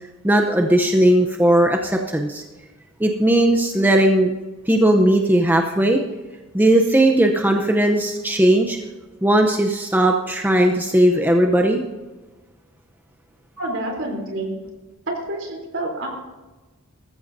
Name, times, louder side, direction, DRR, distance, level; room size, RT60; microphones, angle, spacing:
voice 1, 0.2-2.4 3.0-4.3 4.7-6.0 6.5-8.8 9.2-11.8, right 1 dB, 10° right, 3 dB, 0.7 m, -17 dB
voice 2, 13.6-14.6 15.1-16.1, right 1 dB, 60° right, 1 dB, 3.5 m, -28 dB
19.5 x 14.5 x 2.7 m, 1.2 s
head